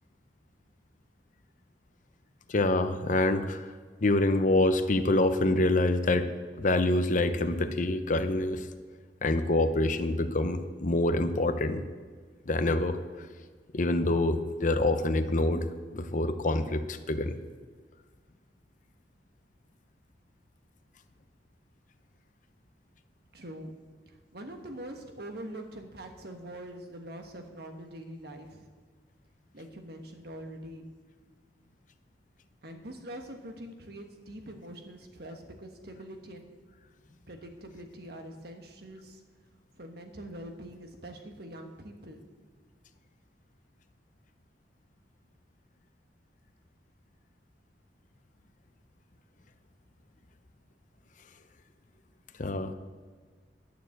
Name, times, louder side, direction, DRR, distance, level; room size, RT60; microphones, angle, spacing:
voice 1, 2.5-3.6 4.0-6.3 6.6-8.7 9.2-11.8 12.5-13.0 13.7-15.7 15.9-17.4 52.4-52.7, left 2 dB, 45° left, 9 dB, 0.7 m, -26 dB
voice 2, 23.3-23.7 24.1-28.7 29.5-30.9 32.6-36.5 37.3-39.2 39.7-42.2, right 1 dB, 60° right, 4 dB, 1.4 m, -44 dB
11.5 x 6.7 x 7.8 m, 1.6 s
head